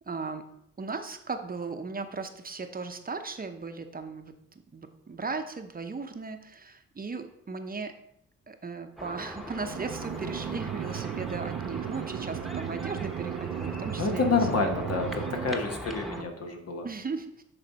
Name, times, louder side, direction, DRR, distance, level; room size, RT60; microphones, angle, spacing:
voice 1, 0.1-0.5 0.8-4.3 4.7-8.0 8.5-14.4 16.0-16.3 16.8-17.4, right 4 dB, 30° right, 7 dB, 0.8 m, -37 dB
sound 1, 9.0-16.2, equal, ahead, 1.1 m, -40 dB
sound 2, 9.6-15.5, right 11 dB, 50° right, 0.4 m, -35 dB
voice 2, 14.0-16.9, left 4 dB, 55° left, 3 dB, 1.4 m, -28 dB
10.5 x 4.1 x 4.1 m, 0.76 s
cardioid pair, 65°, 29 cm